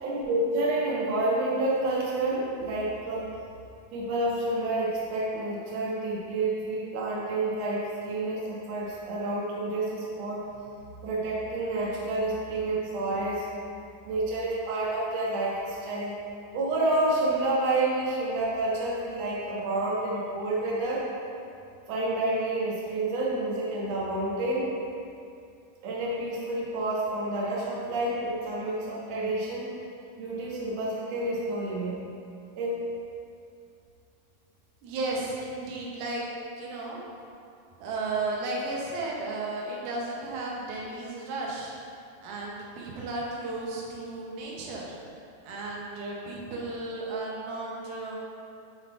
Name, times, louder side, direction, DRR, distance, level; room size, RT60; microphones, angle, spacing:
voice 1, 0.0-3.3 3.9-10.4 11.0-13.5 14.1-16.2 16.5-21.1 21.9-24.7 25.8-29.8 30.2-32.0 32.6-32.8, right 2 dB, 60° right, -6 dB, 2.0 m, -29 dB
voice 2, 34.8-36.3 36.6-37.0 37.8-41.7 42.2-44.9 45.4-48.2, right 2 dB, 85° right, -3 dB, 2.9 m, -34 dB
7.7 x 4.3 x 4.4 m, 2.5 s
omnidirectional pair, 4.2 m